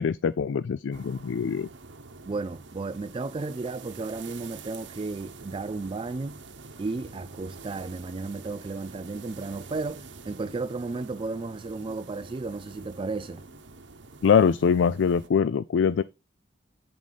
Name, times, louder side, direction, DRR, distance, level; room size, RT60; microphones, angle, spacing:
voice 1, 0.0-1.7 14.2-16.0, left 6 dB, 80° left, 0.4 m, -23 dB
sound 1, 0.9-15.3, right 4 dB, 75° right, 1.1 m, -46 dB
voice 2, 2.3-6.4 6.8-13.4, right 3 dB, 30° right, 0.3 m, -34 dB
10.5 x 4.9 x 4.1 m
head